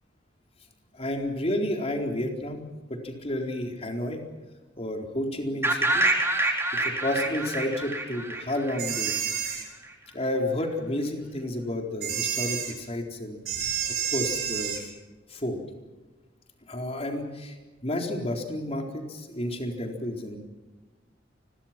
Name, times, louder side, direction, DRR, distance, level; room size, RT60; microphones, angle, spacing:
voice 1, 0.9-4.2 4.8-6.1 6.5-9.2 10.1-13.4 13.9-14.9 15.3-15.6 16.7-17.6 17.8-20.4, left 1 dB, 35° left, 2 dB, 4.1 m, -31 dB
sound 1, 5.6-9.5, right 2 dB, 15° right, 3.9 m, -27 dB
sound 2, 8.8-9.6 12.0-12.7 13.5-14.8, right 8 dB, 55° right, 5.7 m, -29 dB
30.0 x 22.0 x 6.1 m, 1.2 s
head